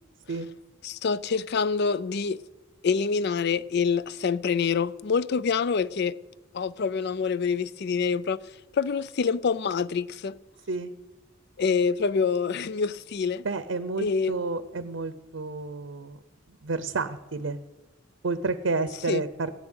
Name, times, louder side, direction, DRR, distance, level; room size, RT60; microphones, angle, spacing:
voice 1, 0.8-2.4 2.8-6.2 6.5-8.4 8.7-10.4 11.6-13.4 14.0-14.3 19.1-19.2, left 5 dB, 55° left, 0.4 m, -26 dB
voice 2, 13.4-16.2 16.5-17.6 18.2-19.5, right 3 dB, 75° right, 0.7 m, -30 dB
15.5 x 7.2 x 9.6 m
head